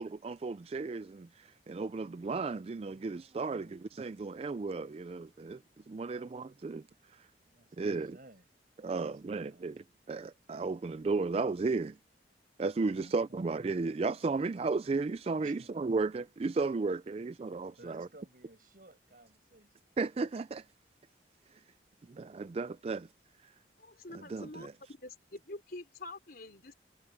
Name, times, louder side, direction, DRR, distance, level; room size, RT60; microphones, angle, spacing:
voice 1, 0.0-5.6 5.9-6.9 7.1-7.3 7.8-8.2 8.8-12.0 12.6-18.1 20.0-20.7 22.1-23.1 23.4-23.5 24.1-24.7, right 3 dB, 35° right, 0.3 m, -34 dB
voice 2, 2.8-3.8 6.0-6.3 7.5-8.5 8.9-9.7 12.9-13.4 15.4-15.7 17.5-20.0, right 2 dB, 55° right, 6.6 m, -58 dB
voice 3, 23.8-26.7, left 2 dB, 55° left, 4.1 m, -46 dB
head